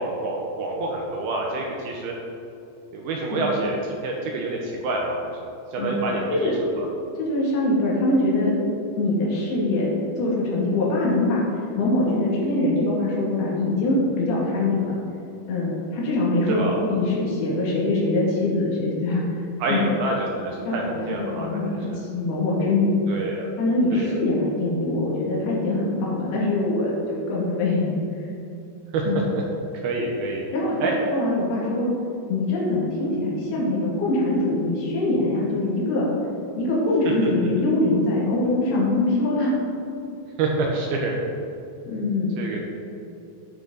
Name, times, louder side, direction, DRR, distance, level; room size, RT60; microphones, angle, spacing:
voice 1, 0.0-2.1 2.9-6.5 6.8-6.9 16.5-16.8 19.6-21.6 21.9-22.0 23.1-23.5 23.9-24.1 28.9-29.0 29.8-30.4 30.8-30.9 40.4-41.2 42.4-42.6, right 2 dB, 80° right, -1 dB, 2.2 m, -27 dB
voice 2, 7.2-8.5 9.0-9.8 10.1-14.9 15.5-16.6 16.9-19.4 19.7-19.8 20.6-22.9 23.6-28.3 29.1-29.2 30.5-31.9 32.3-36.1 36.6-39.5 41.8-42.4, left 2 dB, 60° left, -5 dB, 3.8 m, -23 dB
13.0 x 6.7 x 4.0 m, 2.7 s
omnidirectional pair, 5.5 m